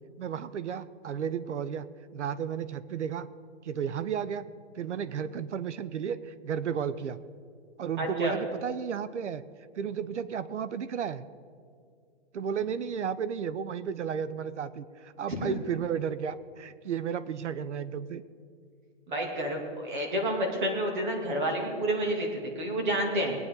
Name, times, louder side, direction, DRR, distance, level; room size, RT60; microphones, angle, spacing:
voice 1, 0.2-3.3 3.6-4.5 4.8-7.2 7.8-9.4 9.8-11.2 12.3-18.2, right 7 dB, 80° right, 15 dB, 0.7 m, -33 dB
voice 2, 8.0-8.3 15.4-15.5 19.1-23.4, right 1 dB, 45° right, 1 dB, 2.7 m, -29 dB
21.0 x 9.2 x 3.9 m, 2.3 s
hypercardioid pair, 175°, 35 cm